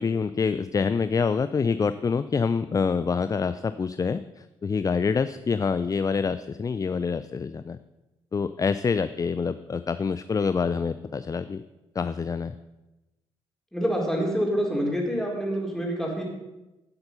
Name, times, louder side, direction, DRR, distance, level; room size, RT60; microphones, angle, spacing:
voice 1, 0.0-4.2 4.6-7.8 8.3-11.6 12.0-12.5, left 5 dB, 25° left, 13 dB, 0.4 m, -26 dB
voice 2, 13.7-16.2, equal, 5° left, -2 dB, 4.2 m, -26 dB
11.0 x 7.9 x 5.5 m, 1.0 s
hypercardioid pair, 50°, 13 cm